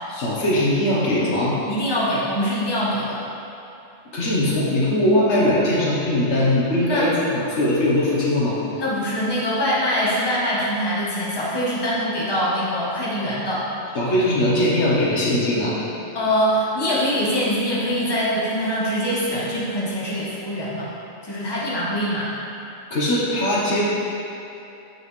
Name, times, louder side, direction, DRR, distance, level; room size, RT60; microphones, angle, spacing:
voice 1, 0.1-1.6 4.1-8.6 13.9-15.8 22.9-23.8, left 1 dB, 75° left, -6 dB, 1.5 m, -20 dB
voice 2, 1.6-3.2 6.8-7.1 8.8-13.7 16.1-20.9 21.2-22.3, equal, 20° left, -7 dB, 1.2 m, -23 dB
6.9 x 6.2 x 3.2 m, 2.9 s
omnidirectional pair, 1.2 m